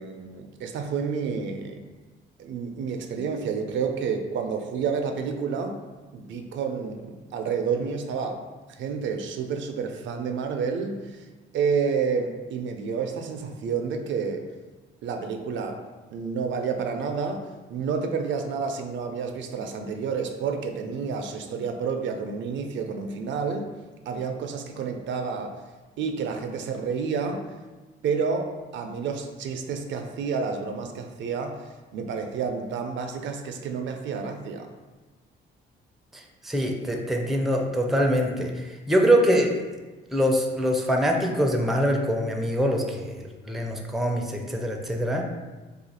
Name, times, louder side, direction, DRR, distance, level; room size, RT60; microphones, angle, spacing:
voice 1, 0.0-1.8 2.4-5.8 6.1-8.4 8.8-11.3 11.5-14.4 15.0-15.8 16.1-23.7 24.1-25.6 26.0-27.4 28.0-34.7, right 5 dB, 70° right, 5 dB, 0.4 m, -29 dB
voice 2, 36.1-39.6 40.1-45.3, equal, ahead, 2 dB, 0.4 m, -24 dB
2.4 x 2.4 x 4.1 m, 1.2 s
cardioid pair, 90°, 20 cm